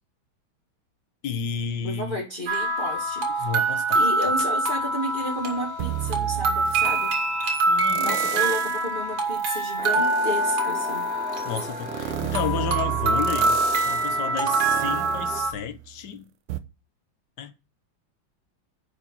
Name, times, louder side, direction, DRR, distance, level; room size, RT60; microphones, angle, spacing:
voice 1, 1.2-2.2 3.4-4.0 7.4-8.2 11.4-16.2 17.4-17.5, left 7 dB, 65° left, 1.4 m, -32 dB
voice 2, 1.8-3.5 3.9-7.1 7.9-11.1, equal, 25° left, 2.0 m, -32 dB
sound 1, 2.5-15.5, right 2 dB, 75° right, 2.7 m, -25 dB
sound 2, 5.8-7.2 7.8-8.9 9.3-16.0 16.5-16.6, right 13 dB, 90° right, 1.6 m, -33 dB
sound 3, 9.8-15.4, left 1 dB, 5° right, 2.5 m, -38 dB
10.5 x 4.9 x 5.7 m
omnidirectional pair, 2.2 m